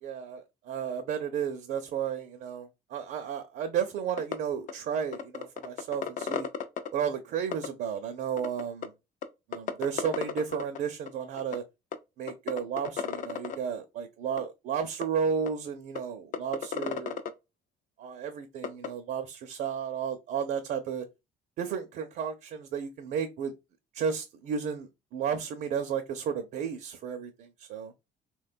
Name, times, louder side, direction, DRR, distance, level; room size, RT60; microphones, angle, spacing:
voice 1, 0.0-6.5 6.9-8.9 9.5-11.6 12.2-17.2 18.0-21.1 21.6-23.5 23.9-27.9, right 7 dB, 60° right, 0.5 m, -33 dB
sound 1, 4.2-4.3 4.7-4.8 5.1-6.9 7.5-7.7 8.4-8.9 9.2-9.3 9.5-10.8 11.1-11.2 11.4-11.6 11.9-12.0 12.3-13.6 14.4-14.5 15.0-15.1 15.5-15.6 16.0-16.1 16.3-17.3 18.6-18.9, left 8 dB, 50° left, 0.5 m, -32 dB
3.2 x 2.2 x 2.4 m
cardioid pair, 110°, 17 cm